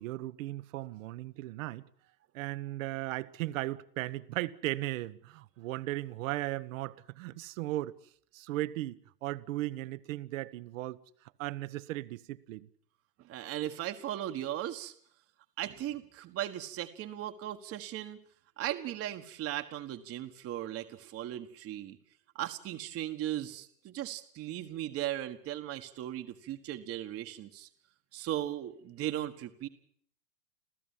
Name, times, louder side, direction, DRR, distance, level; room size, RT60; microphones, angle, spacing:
voice 1, 0.0-1.8 2.3-7.9 8.3-11.0 11.4-12.7, right 17 dB, 50° right, 1.3 m, -36 dB
voice 2, 13.2-14.9 15.6-18.2 18.6-22.0 22.3-27.7 28.1-29.7, right 12 dB, 30° right, 1.5 m, -37 dB
28.0 x 15.0 x 7.4 m
hypercardioid pair, 110°, 49 cm